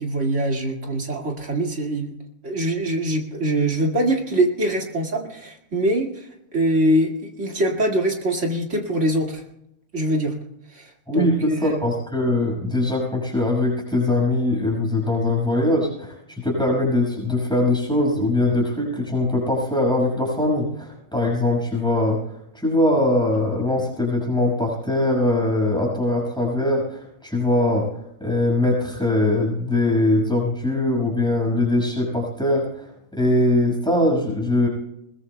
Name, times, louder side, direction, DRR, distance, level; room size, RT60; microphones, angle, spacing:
voice 1, 0.0-2.1 2.4-9.4 9.9-10.3 10.7-11.8, right 1 dB, 55° right, 1 dB, 2.4 m, -23 dB
voice 2, 11.1-22.2 22.5-27.9 28.2-32.9 33.1-34.7, left 1 dB, 5° left, -2 dB, 5.8 m, -21 dB
21.5 x 20.5 x 2.2 m, 0.81 s
omnidirectional pair, 1.5 m